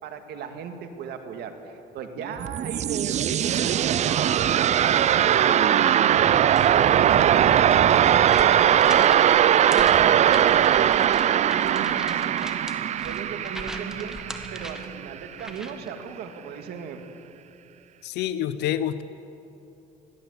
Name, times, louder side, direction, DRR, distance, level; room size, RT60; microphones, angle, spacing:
voice 1, 0.0-8.3 8.7-12.6 13.0-14.2 14.5-17.0, right 7 dB, 75° right, 6 dB, 2.1 m, -36 dB
sound 1, 2.2-15.1, right 10 dB, 45° right, 0.4 m, -20 dB
sound 2, 6.4-15.9, equal, 5° right, 1.8 m, -41 dB
voice 2, 18.0-19.0, left 11 dB, 80° left, 13 dB, 0.7 m, -27 dB
21.5 x 15.0 x 8.3 m, 2.7 s
cardioid pair, 110°, 17 cm